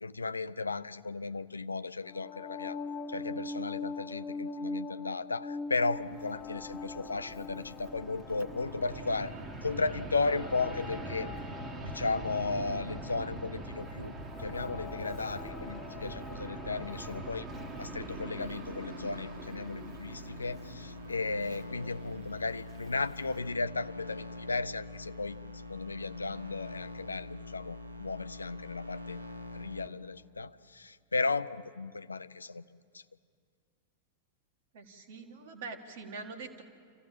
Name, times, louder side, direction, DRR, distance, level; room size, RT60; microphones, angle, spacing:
voice 1, 0.0-2.8 3.1-9.3 9.6-11.3 11.8-14.1 14.4-17.5 17.8-25.4 25.7-29.2 29.5-32.6, left 3 dB, 80° left, 14 dB, 0.4 m, -35 dB
sound 1, 2.0-18.0, left 4 dB, 30° left, 1.7 m, -43 dB
Fixed-wing aircraft airplane, 5.8-23.6, right 3 dB, 30° right, 1.6 m, -44 dB
sound 2, 16.5-29.9, left 2 dB, 80° right, 0.9 m, -45 dB
voice 2, 34.7-36.6, right 4 dB, 55° right, 5 dB, 1.9 m, -44 dB
27.0 x 15.0 x 7.5 m, 2.2 s
figure-of-eight pair, 90°, 0 cm